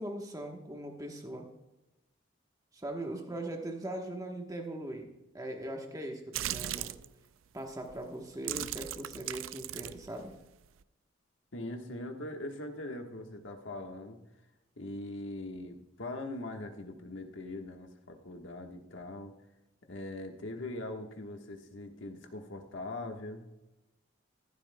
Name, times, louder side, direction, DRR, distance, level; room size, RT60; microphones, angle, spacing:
voice 1, 0.0-1.5 2.7-5.1 5.3-6.9 7.5-10.3, right 1 dB, 20° right, 2 dB, 1.1 m, -40 dB
sound 1, 6.3-7.1 7.8-8.0 8.3-10.8, right 12 dB, 85° right, 0.4 m, -38 dB
voice 2, 11.5-14.2 14.8-19.3 19.9-23.4, left 2 dB, 70° left, 4 dB, 1.3 m, -41 dB
14.5 x 11.5 x 2.2 m, 0.97 s
head